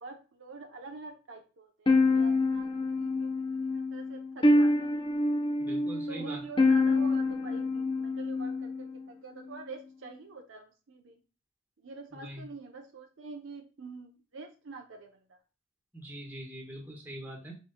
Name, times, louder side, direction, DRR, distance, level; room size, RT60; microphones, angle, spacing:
voice 1, 0.0-5.0 6.1-11.2 11.8-15.4, right 3 dB, 70° right, 4 dB, 0.7 m, -46 dB
sound 1, 1.9-9.0, left 2 dB, 25° left, 0.6 m, -26 dB
voice 2, 5.6-6.4 12.1-12.4 15.9-17.5, right 1 dB, 10° right, -1 dB, 1.2 m, -42 dB
5.1 x 4.2 x 2.2 m, 0.33 s
head